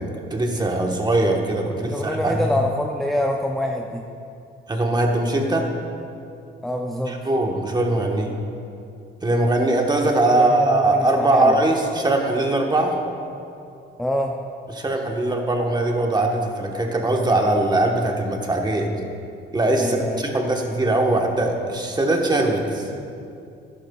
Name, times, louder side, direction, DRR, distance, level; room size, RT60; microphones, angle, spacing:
voice 1, 0.0-2.5 4.7-5.7 7.1-8.3 9.2-13.0 14.7-18.9 19.5-22.9, right 2 dB, 20° right, 1 dB, 1.2 m, -21 dB
voice 2, 1.8-4.0 6.6-7.2 10.3-11.6 14.0-14.3 19.8-20.3, left 1 dB, ahead, 1 dB, 0.5 m, -25 dB
12.0 x 10.0 x 2.3 m, 2.5 s
cardioid pair, 90°, 20 cm